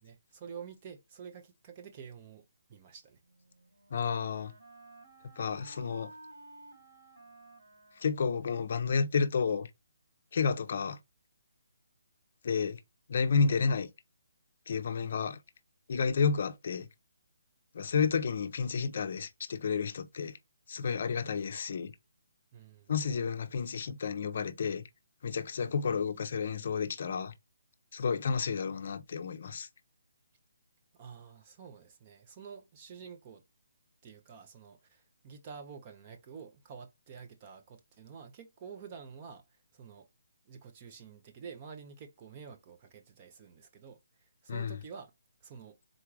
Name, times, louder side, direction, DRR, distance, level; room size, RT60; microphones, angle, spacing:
voice 1, 0.0-3.2 14.9-15.2 22.5-22.9 30.9-33.4 34.0-39.5 39.7-40.1 40.5-45.1 45.4-45.8, right 6 dB, 25° right, 0.4 m, -49 dB
Wind instrument woodwind instrument, 3.2-9.0, right 2 dB, 90° right, 2.7 m, -55 dB
voice 2, 3.9-4.5 5.4-6.1 8.0-9.7 10.3-11.0 12.4-12.8 13.1-13.9 14.7-15.4 15.9-16.9 17.7-20.4 20.7-21.9 22.9-24.8 25.2-27.3 27.9-29.7 44.5-44.8, left 5 dB, 45° left, 0.5 m, -31 dB
3.8 x 2.4 x 4.6 m
hypercardioid pair, 170°, 0 cm